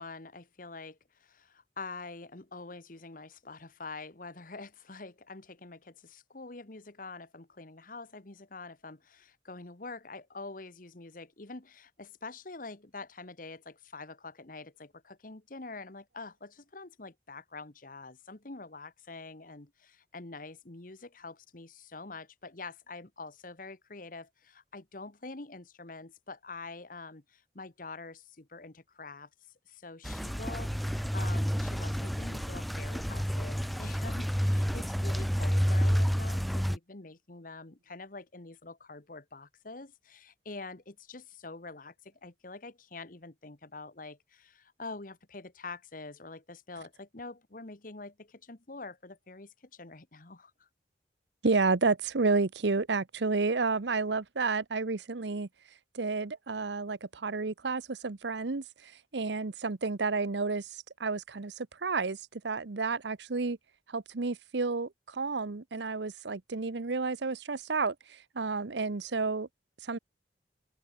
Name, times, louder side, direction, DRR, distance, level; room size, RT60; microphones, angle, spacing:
voice 1, 0.0-29.3 29.7-50.7, left 3 dB, 50° left, 1.4 m, -46 dB
sound 1, 30.0-36.8, equal, ahead, 0.7 m, -29 dB
voice 2, 51.4-55.5 55.9-63.6 63.9-69.5 69.8-70.0, right 4 dB, 75° right, 0.9 m, -31 dB
head